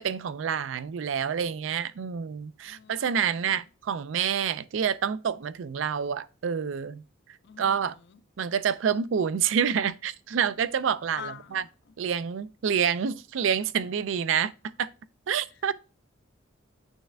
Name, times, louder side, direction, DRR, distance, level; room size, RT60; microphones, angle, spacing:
voice 1, 0.0-7.0 7.6-8.0 8.4-11.6 12.0-14.5 14.8-14.9 15.3-15.7, right 7 dB, 75° right, 0.4 m, -28 dB
voice 2, 2.7-3.6 7.4-8.2 11.1-11.7, left 7 dB, 65° left, 0.5 m, -45 dB
8.9 x 3.3 x 3.3 m
head